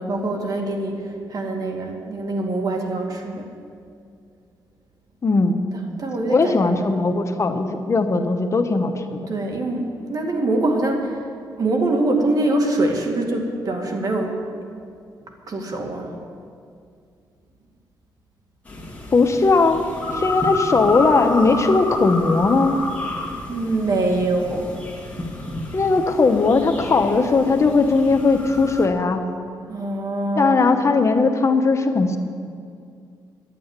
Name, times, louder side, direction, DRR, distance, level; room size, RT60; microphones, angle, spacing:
voice 1, 0.0-3.5 6.0-6.7 9.3-11.2 11.6-14.4 15.5-16.1 23.5-24.7 29.7-30.7, right 2 dB, 50° right, 2 dB, 2.2 m, -24 dB
voice 2, 5.2-5.6 6.3-9.3 19.1-19.8 20.1-22.8 25.7-29.3 30.4-32.2, left 3 dB, 40° left, 6 dB, 1.2 m, -18 dB
sound 1, 18.7-28.9, left 2 dB, 15° left, 2.3 m, -30 dB
11.0 x 8.6 x 9.7 m, 2.3 s
cardioid pair, 85°, 8 cm